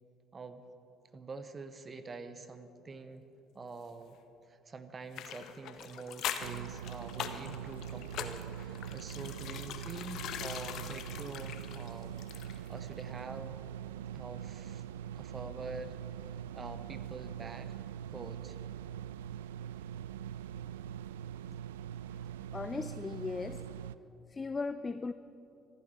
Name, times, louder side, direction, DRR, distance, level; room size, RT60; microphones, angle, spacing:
voice 1, 0.3-0.6 1.1-3.3 3.5-4.2 4.5-12.2 12.4-13.6 14.1-14.8 15.1-16.0 16.5-17.8 18.1-18.6, right 3 dB, 30° right, 1.1 m, -46 dB
sound 1, 5.1-12.7 13.0-13.1, left 9 dB, 55° left, 0.9 m, -42 dB
sound 2, 6.4-24.0, right 10 dB, 75° right, 0.3 m, -43 dB
voice 2, 22.5-23.7 24.3-25.1, left 4 dB, 25° left, 0.5 m, -37 dB
25.5 x 11.5 x 4.8 m
figure-of-eight pair, 55°, 0 cm